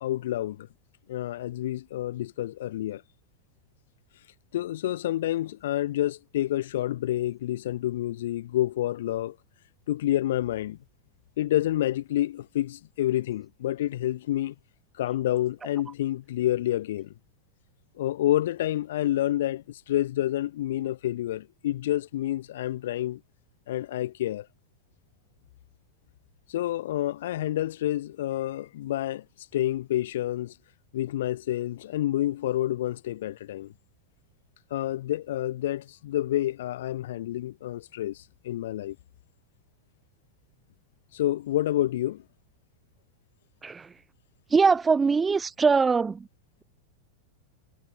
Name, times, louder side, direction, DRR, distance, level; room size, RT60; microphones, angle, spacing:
voice 1, 0.0-0.7 1.1-3.0 4.5-9.4 9.9-10.8 11.4-14.5 15.0-17.1 18.0-23.2 23.7-24.5 26.5-29.2 29.5-30.5 30.9-33.7 34.7-39.0 41.1-42.2, left 13 dB, 55° left, 0.4 m, -28 dB
voice 2, 44.5-46.2, right 5 dB, 15° right, 0.5 m, -22 dB
figure-of-eight pair, 90°, 0 cm